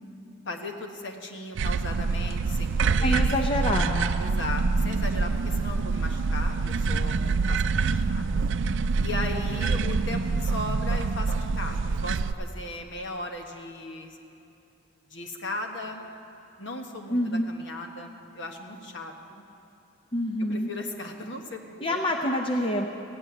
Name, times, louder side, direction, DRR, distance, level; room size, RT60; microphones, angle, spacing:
voice 1, 0.4-3.3 4.2-8.2 9.0-14.2 15.1-16.0 16.6-19.5 20.5-22.0, left 2 dB, 60° left, 3 dB, 1.3 m, -37 dB
sound 1, 1.6-12.3, right 4 dB, 60° right, 0.4 m, -26 dB
voice 2, 3.0-4.1 17.1-17.5 20.1-20.7 21.8-22.9, left 1 dB, 25° left, 2 dB, 0.6 m, -26 dB
15.5 x 7.5 x 9.6 m, 2.7 s
head